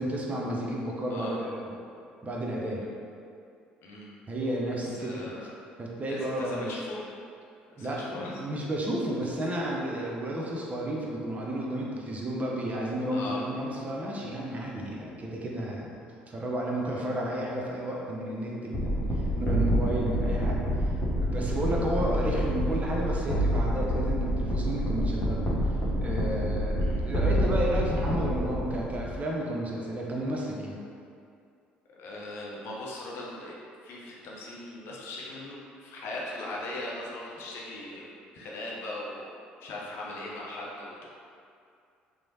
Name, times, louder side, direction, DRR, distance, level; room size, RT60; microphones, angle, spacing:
voice 1, 0.0-1.7 2.2-2.8 4.3-5.3 5.8-6.8 7.8-15.9 16.3-20.6 21.2-25.5 26.0-30.8, right 1 dB, 30° right, -2 dB, 0.5 m, -32 dB
voice 2, 5.0-5.5 6.1-7.0 7.7-8.3 9.5-9.6 13.1-13.4 16.9-17.0 26.8-27.0 32.0-33.6 33.8-39.3 39.6-41.0, left 2 dB, 60° left, -4 dB, 0.5 m, -39 dB
sound 1, 18.7-29.2, equal, 30° left, 0.8 m, -28 dB
3.0 x 2.0 x 2.7 m, 2.4 s
hypercardioid pair, 55°, 5 cm